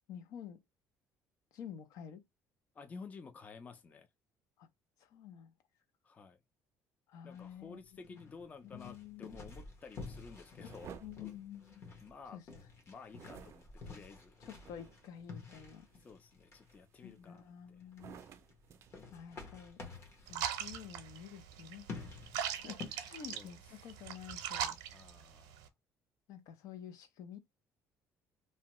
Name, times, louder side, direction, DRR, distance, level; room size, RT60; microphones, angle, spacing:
voice 1, 0.1-0.6 1.5-2.2 4.6-4.7 5.0-5.5 7.1-7.8 8.1-8.2 8.6-9.4 10.6-10.7 11.0-11.9 12.3-12.4 14.4-15.9 17.0-18.2 19.1-19.8 20.3-22.1 22.6-24.8 26.3-27.4, left 9 dB, 70° left, 0.6 m, -50 dB
voice 2, 2.7-4.1 6.0-6.4 7.2-11.3 12.0-12.4 12.9-14.5 16.0-17.8 23.3-23.6 24.9-25.6, left 5 dB, 25° left, 0.4 m, -52 dB
sound 1, 7.3-22.9, left 4 dB, 45° left, 1.1 m, -51 dB
sound 2, 10.6-12.2 13.1-15.2 15.7-16.1 16.7-17.5 17.9-19.8, right 8 dB, 50° right, 0.4 m, -55 dB
sound 3, 20.3-25.7, right 10 dB, 85° right, 0.6 m, -41 dB
2.7 x 2.2 x 2.9 m
cardioid pair, 135°, 6 cm